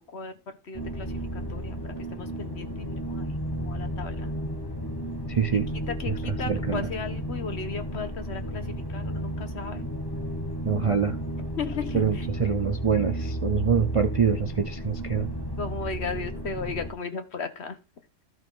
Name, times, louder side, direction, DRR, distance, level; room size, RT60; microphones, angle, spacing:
voice 1, 0.7-1.8 2.1-4.3 5.5-8.6 8.9-9.9 11.6-12.3 15.6-17.8, left 4 dB, 60° left, 8 dB, 1.4 m, -35 dB
sound 1, 0.7-16.9, equal, 20° left, 1.1 m, -33 dB
voice 2, 5.3-5.7 6.1-6.9 10.6-11.2 11.9-15.3, right 6 dB, 40° right, 8 dB, 0.5 m, -25 dB
14.0 x 5.1 x 3.8 m, 0.29 s
omnidirectional pair, 1.3 m